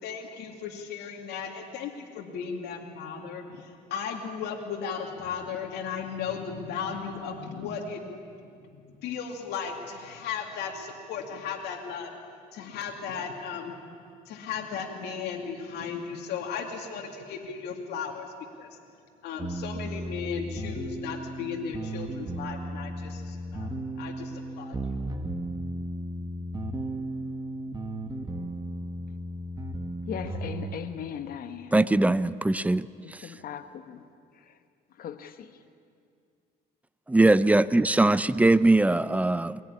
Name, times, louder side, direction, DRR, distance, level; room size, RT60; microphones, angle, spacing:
voice 1, 0.0-8.0 8.6-12.1 12.5-13.7 14.3-18.8 19.2-23.7 24.0-24.8, left 6 dB, 80° left, 1 dB, 2.4 m, -36 dB
sound 1, 19.4-30.8, right 1 dB, 25° right, 1.8 m, -35 dB
voice 2, 30.1-31.7 33.0-34.0 35.0-35.5, left 8 dB, 60° left, 9 dB, 1.5 m, -38 dB
voice 3, 31.7-33.3 37.1-39.6, right 2 dB, 10° right, 16 dB, 0.5 m, -21 dB
23.0 x 17.0 x 9.9 m, 2.3 s
cardioid pair, 110°, 17 cm